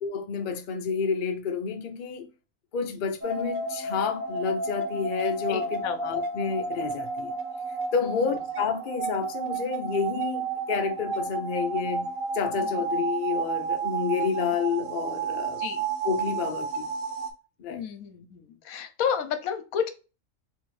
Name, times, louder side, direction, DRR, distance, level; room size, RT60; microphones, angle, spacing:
voice 1, 0.0-2.3 2.7-7.3 7.9-12.1 12.3-15.6 16.0-16.9 17.6-17.8, left 6 dB, 55° left, 0.6 m, -29 dB
sound 1, 3.2-17.3, right 4 dB, 65° right, 1.1 m, -31 dB
voice 2, 5.5-6.0 8.0-8.3 12.5-12.8 15.6-15.8 17.7-19.9, left 8 dB, 75° left, 1.1 m, -32 dB
3.5 x 2.8 x 3.1 m
omnidirectional pair, 1.5 m